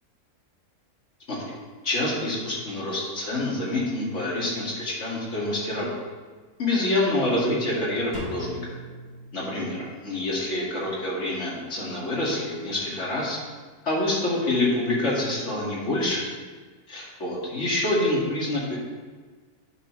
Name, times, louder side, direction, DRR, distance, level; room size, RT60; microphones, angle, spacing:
voice 1, 1.8-6.0 6.6-8.6 9.3-13.4 13.8-16.3 16.9-18.8, left 1 dB, 50° left, -6 dB, 2.5 m, -26 dB
Drum, 8.1-10.1, left 2 dB, 65° right, 2.7 m, -39 dB
10.0 x 6.5 x 3.2 m, 1.5 s
omnidirectional pair, 1.6 m